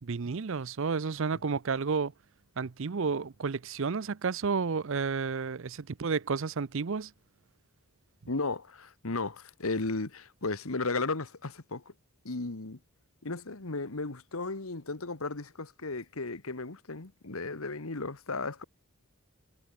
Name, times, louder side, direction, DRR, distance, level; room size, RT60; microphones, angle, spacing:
voice 1, 0.0-2.1 2.6-7.1, right 5 dB, 60° right, 0.6 m, -31 dB
voice 2, 8.3-11.9 12.2-12.8 13.2-18.6, left 3 dB, 75° left, 1.6 m, -35 dB
head